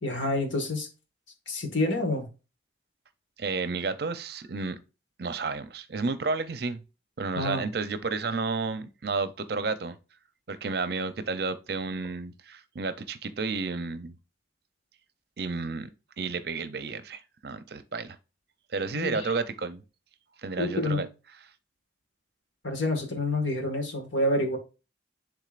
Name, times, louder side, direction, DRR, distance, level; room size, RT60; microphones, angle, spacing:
voice 1, 0.0-0.9 1.5-2.3 7.4-7.7 18.9-19.3 20.6-21.0 22.6-24.6, left 1 dB, 85° left, 1.8 m, -28 dB
voice 2, 3.4-4.8 5.2-6.8 7.2-10.0 10.5-14.2 15.4-15.9 16.2-18.2 18.7-19.8 20.4-21.1, right 4 dB, 55° right, 0.6 m, -31 dB
10.5 x 3.6 x 2.5 m
head